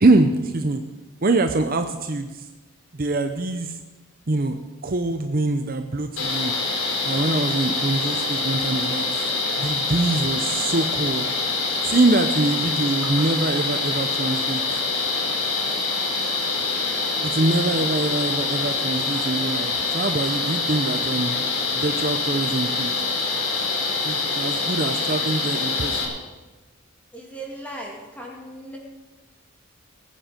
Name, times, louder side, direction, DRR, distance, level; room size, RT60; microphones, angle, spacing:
voice 1, 0.0-0.8 1.2-2.5 2.9-3.8 4.3-6.5 7.0-9.1 9.6-11.3 11.8-14.6 17.2-21.4 21.7-22.9 24.0-26.1, right 2 dB, 40° right, 6 dB, 0.7 m, -24 dB
sound 1, 6.2-26.1, left 3 dB, 70° left, 3.1 m, -25 dB
voice 2, 27.1-28.8, right 1 dB, 5° left, -2 dB, 2.6 m, -38 dB
20.5 x 8.9 x 5.2 m, 1.2 s
head